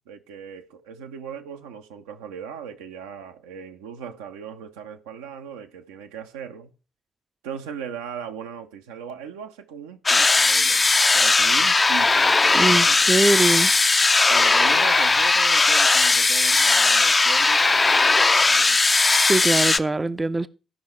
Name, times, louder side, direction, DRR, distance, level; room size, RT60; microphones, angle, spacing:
voice 1, 0.1-6.7 7.4-13.2 14.3-18.8, right 8 dB, 75° right, 0.7 m, -38 dB
sound 1, 10.1-19.8, left 3 dB, 30° left, 0.5 m, -18 dB
voice 2, 12.5-13.7 19.2-20.5, right 2 dB, 20° right, 0.5 m, -22 dB
14.0 x 5.5 x 4.5 m
figure-of-eight pair, 40°, 0 cm